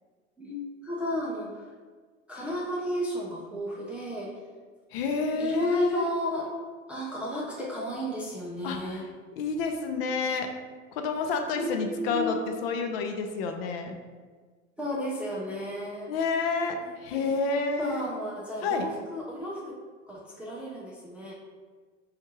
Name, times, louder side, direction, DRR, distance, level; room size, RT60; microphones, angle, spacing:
voice 1, 0.4-1.6 2.3-4.3 5.4-6.5 6.9-9.1 11.6-12.3 14.8-16.1 16.8-17.3 17.8-19.7 20.1-21.3, equal, 5° right, -5 dB, 0.3 m, -33 dB
voice 2, 4.9-6.1 8.6-9.0 9.4-10.5 10.9-14.0 16.1-16.8 17.0-18.0 18.6-18.9, left 4 dB, 50° left, 5 dB, 0.6 m, -29 dB
5.1 x 2.4 x 3.0 m, 1.5 s
figure-of-eight pair, 85°, 38 cm